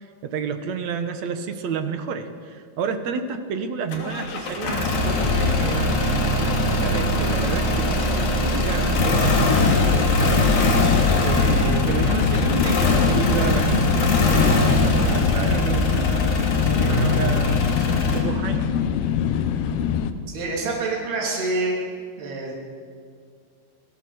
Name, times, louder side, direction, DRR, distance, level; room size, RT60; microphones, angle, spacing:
voice 1, 0.0-10.5 11.2-18.7, right 6 dB, 55° right, 8 dB, 2.1 m, -31 dB
sound 1, 3.9-18.2, left 2 dB, 60° left, 4.5 m, -21 dB
sound 2, 11.3-20.1, left 8 dB, 80° left, 3.1 m, -24 dB
voice 2, 20.3-21.8 22.2-22.5, right 3 dB, 75° right, -2 dB, 5.2 m, -26 dB
28.5 x 19.0 x 8.0 m, 2.1 s
omnidirectional pair, 4.6 m